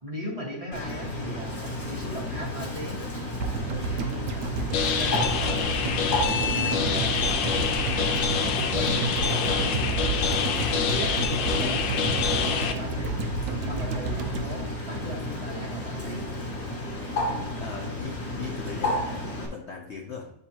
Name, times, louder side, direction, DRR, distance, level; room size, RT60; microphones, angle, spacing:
voice 1, 0.0-3.0 5.0-5.6 6.6-7.2 7.8-8.3 8.7-10.1 10.7-12.0 12.3-13.2 13.6-16.3, equal, 20° right, -4 dB, 1.3 m, -37 dB
Bird, 0.7-19.5, left 1 dB, 35° left, 1.7 m, -33 dB
sound 1, 3.4-15.6 15.9-16.0, right 3 dB, 65° right, 1.0 m, -31 dB
sound 2, 4.7-12.7, left 6 dB, 80° left, 1.4 m, -26 dB
voice 2, 17.6-20.3, left 5 dB, 60° left, 0 dB, 0.7 m, -39 dB
9.1 x 3.6 x 2.9 m, 0.85 s
omnidirectional pair, 2.0 m